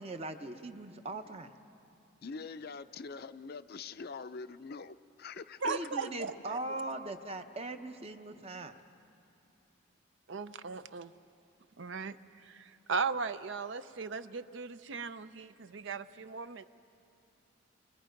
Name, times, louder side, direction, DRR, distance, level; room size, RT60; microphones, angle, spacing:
voice 1, 0.0-1.5 5.6-8.8, right 2 dB, 30° right, 7 dB, 0.8 m, -40 dB
voice 2, 2.2-6.1, left 4 dB, 50° left, 13 dB, 0.5 m, -44 dB
voice 3, 5.6-6.6 10.3-11.1 11.8-16.6, right 5 dB, 60° right, 13 dB, 0.6 m, -37 dB
29.5 x 22.5 x 5.2 m, 2.7 s
head